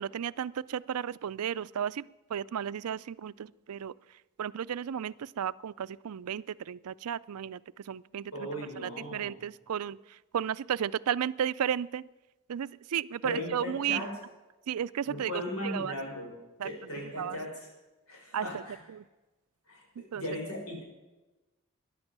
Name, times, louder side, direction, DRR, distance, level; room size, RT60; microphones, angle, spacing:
voice 1, 0.0-3.9 4.4-12.1 12.5-14.1 14.7-16.0 16.6-16.9 17.2-17.4 18.3-19.0 20.1-20.6, right 9 dB, 85° right, 17 dB, 0.4 m, -34 dB
voice 2, 8.3-9.3 13.2-14.1 15.1-16.3 16.6-17.7 18.1-18.7 19.7-19.8 20.1-20.8, left 1 dB, 80° left, -1 dB, 6.3 m, -37 dB
14.0 x 10.5 x 7.4 m, 1.1 s
head